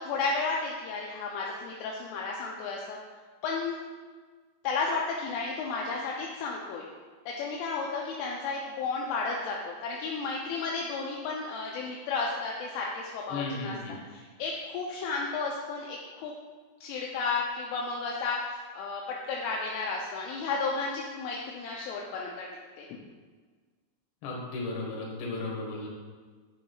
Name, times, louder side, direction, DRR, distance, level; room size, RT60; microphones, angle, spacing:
voice 1, 0.0-3.0 3.4-3.8 4.6-6.9 7.3-13.8 14.1-16.3 16.8-19.0 19.3-22.5 22.8-22.9, left 4 dB, 80° left, -2 dB, 2.9 m, -33 dB
voice 2, 13.3-13.9 24.2-25.9, left 3 dB, 65° left, -2 dB, 2.7 m, -35 dB
9.1 x 7.0 x 2.3 m, 1.5 s
omnidirectional pair, 5.8 m